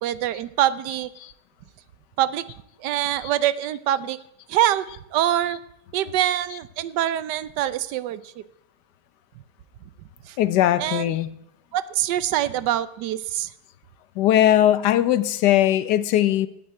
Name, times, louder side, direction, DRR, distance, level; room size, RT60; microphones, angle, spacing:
voice 1, 0.0-1.1 2.2-2.4 2.8-4.2 4.5-4.9 5.1-5.6 5.9-8.4 10.2-10.4 10.8-11.2 11.7-13.5, right 12 dB, 80° right, 16 dB, 1.3 m, -24 dB
voice 2, 10.4-11.3 14.2-16.5, left 12 dB, 80° left, 15 dB, 1.2 m, -19 dB
9.2 x 8.5 x 8.6 m, 0.77 s
omnidirectional pair, 1.8 m